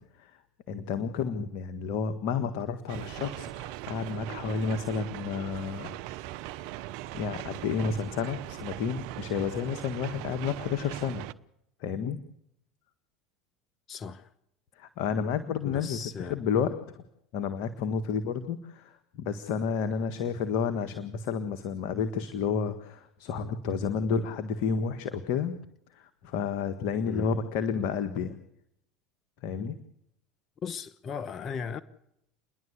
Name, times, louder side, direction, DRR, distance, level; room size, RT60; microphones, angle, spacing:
voice 1, 0.7-6.0 6.6-6.8 7.1-11.2 11.8-12.2 14.8-16.0 16.3-17.0 17.3-25.6 25.9-28.4 29.4-29.8, left 6 dB, 65° left, 1.6 m, -31 dB
sound 1, 2.9-11.3, right 15 dB, 70° right, 0.9 m, -40 dB
voice 2, 13.9-14.3 15.6-16.5 27.1-27.4 30.6-31.8, left 6 dB, 40° left, 1.1 m, -37 dB
29.5 x 11.0 x 8.2 m
hypercardioid pair, 90°, 0 cm